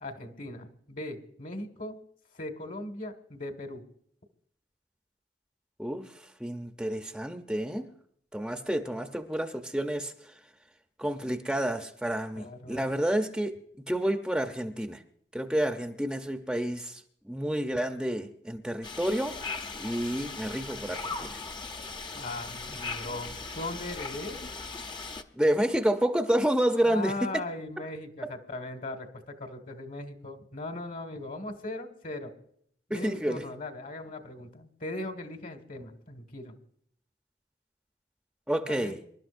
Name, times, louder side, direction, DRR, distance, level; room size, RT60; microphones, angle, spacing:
voice 1, 0.0-2.0 2.3-3.8 12.4-12.9 22.1-24.4 26.8-32.3 32.9-36.5 38.6-39.0, left 2 dB, 50° left, 7 dB, 1.8 m, -39 dB
voice 2, 6.4-7.9 8.3-10.1 11.0-15.0 15.3-17.0 17.3-19.4 19.8-21.4 25.3-27.4 32.9-33.4 38.5-39.0, right 1 dB, 5° right, 6 dB, 0.7 m, -29 dB
sound 1, 18.8-25.2, left 4 dB, 25° left, 0.9 m, -38 dB
26.0 x 12.0 x 2.6 m, 0.66 s
head